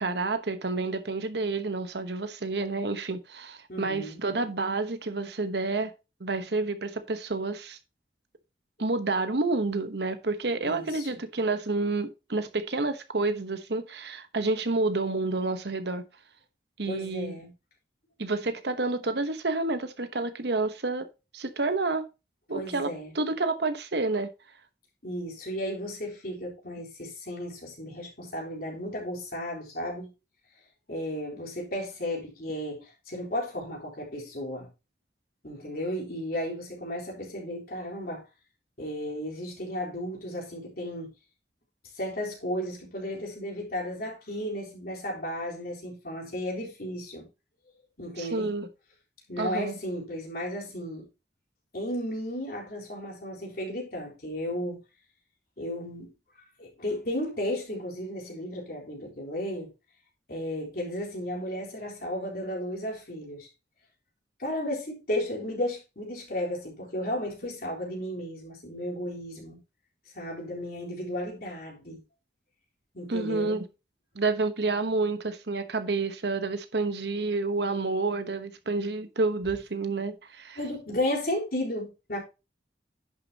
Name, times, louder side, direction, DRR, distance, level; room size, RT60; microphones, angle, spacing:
voice 1, 0.0-5.9 6.2-7.8 8.8-16.0 16.8-17.4 18.2-21.1 21.3-22.1 22.5-24.3 48.2-48.7 49.4-49.7 73.1-73.6 74.1-80.6, right 3 dB, 70° right, 1.1 m, -29 dB
voice 2, 3.7-4.2 10.6-11.1 16.9-17.5 22.5-23.1 25.0-30.1 30.9-34.7 35.4-38.2 38.8-41.1 42.0-47.3 48.0-48.6 49.3-51.1 51.7-54.8 55.6-56.1 56.6-59.7 60.3-63.5 64.4-69.6 70.1-72.0 72.9-73.6 80.6-82.2, left 1 dB, 55° left, 3.9 m, -34 dB
10.5 x 6.8 x 2.9 m
head